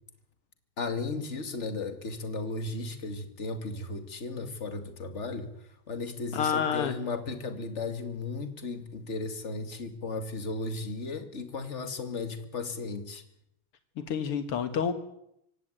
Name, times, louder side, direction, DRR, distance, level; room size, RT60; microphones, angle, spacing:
voice 1, 0.8-5.5 5.9-13.2, left 3 dB, 30° left, 2.5 m, -35 dB
voice 2, 6.3-7.0 14.0-14.9, left 7 dB, 90° left, 2.5 m, -28 dB
26.5 x 15.5 x 9.3 m
omnidirectional pair, 2.4 m